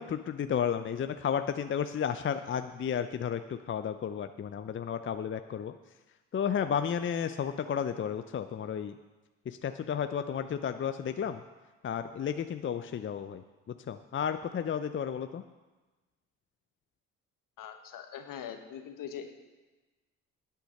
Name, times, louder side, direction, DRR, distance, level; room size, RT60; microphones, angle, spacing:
voice 1, 0.0-5.7 6.3-9.0 9.5-11.4 11.8-15.4, left 8 dB, 35° left, 9 dB, 0.6 m, -33 dB
voice 2, 17.6-19.3, left 8 dB, 60° left, 7 dB, 1.5 m, -42 dB
10.5 x 8.4 x 6.5 m, 1.2 s
hypercardioid pair, 60°, 37 cm